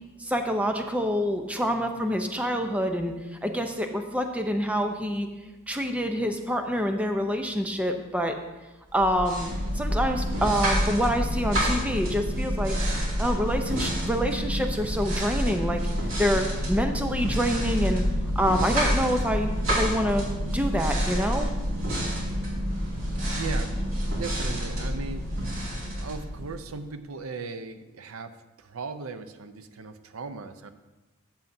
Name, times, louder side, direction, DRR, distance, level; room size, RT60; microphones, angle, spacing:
voice 1, 0.2-3.1 3.4-5.3 5.7-8.4 8.9-12.8 13.2-15.8 16.2-18.0 18.4-20.2 20.5-21.5, equal, 5° right, 4 dB, 0.6 m, -26 dB
sound 1, 8.9-26.8, equal, 65° right, 2.5 m, -28 dB
voice 2, 23.3-25.3 26.0-30.7, right 4 dB, 80° right, 9 dB, 0.6 m, -38 dB
13.0 x 7.1 x 2.7 m, 1.1 s
head